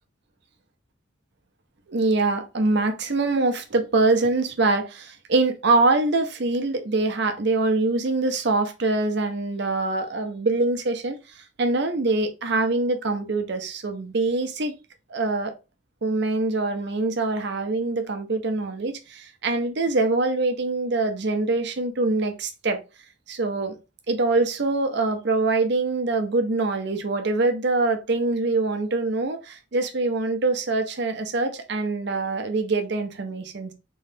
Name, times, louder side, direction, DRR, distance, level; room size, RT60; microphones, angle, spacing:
voice 1, 1.9-11.2 11.6-14.7 15.1-15.5 16.0-22.8 23.3-23.8 24.1-33.7, right 3 dB, 60° right, 0.7 m, -24 dB
3.1 x 2.8 x 3.4 m
head